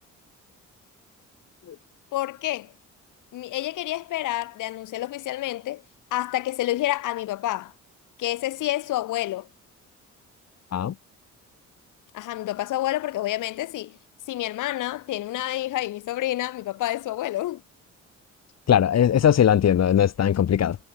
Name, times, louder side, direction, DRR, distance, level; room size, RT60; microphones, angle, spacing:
voice 1, 2.1-2.7 3.3-5.8 6.1-7.7 8.2-9.5 12.1-14.0 14.3-17.6, left 15 dB, 85° left, 3.5 m, -28 dB
voice 2, 18.7-20.8, left 9 dB, 60° left, 3.0 m, -19 dB
cardioid pair, 90°, 30 cm